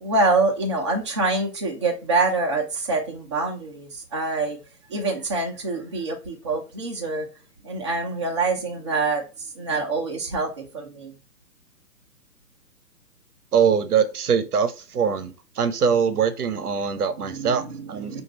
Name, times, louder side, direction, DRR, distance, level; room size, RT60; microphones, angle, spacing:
voice 1, 0.0-4.6 4.9-7.3 7.6-11.1 17.2-18.2, right 3 dB, 20° right, 0.6 m, -26 dB
voice 2, 13.5-17.6 17.9-18.2, right 6 dB, 65° right, 0.8 m, -22 dB
5.0 x 2.6 x 3.0 m
figure-of-eight pair, 140°, 49 cm